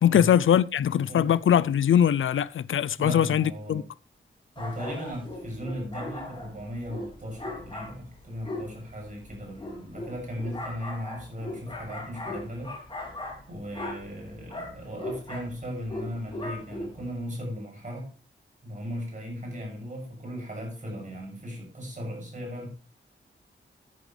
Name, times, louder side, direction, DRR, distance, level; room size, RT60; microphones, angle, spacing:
voice 1, 0.0-3.8, left 9 dB, 80° left, 0.4 m, -22 dB
voice 2, 3.0-3.9 4.6-12.8 13.5-18.1 18.6-22.7, equal, 40° right, 6.9 m, -37 dB
sound 1, 4.6-17.2, left 1 dB, 25° left, 3.1 m, -39 dB
13.5 x 10.0 x 3.3 m
wide cardioid pair, 165°, 20 cm